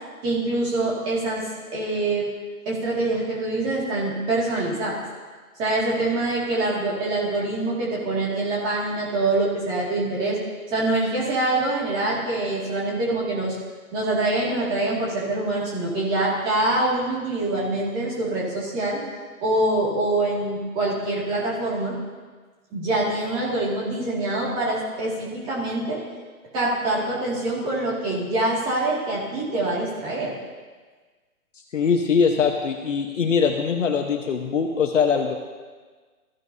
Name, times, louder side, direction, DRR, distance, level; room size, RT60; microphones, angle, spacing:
voice 1, 0.2-1.4 1.7-2.3 2.7-5.0 5.6-10.4 10.7-13.6 13.9-19.0 19.4-22.0 22.7-26.0 26.5-30.3, right 2 dB, 10° right, -5 dB, 2.3 m, -25 dB
voice 2, 31.7-35.4, left 6 dB, 55° left, 3 dB, 1.3 m, -22 dB
22.0 x 14.5 x 2.8 m, 1.4 s
hypercardioid pair, 170°, 43 cm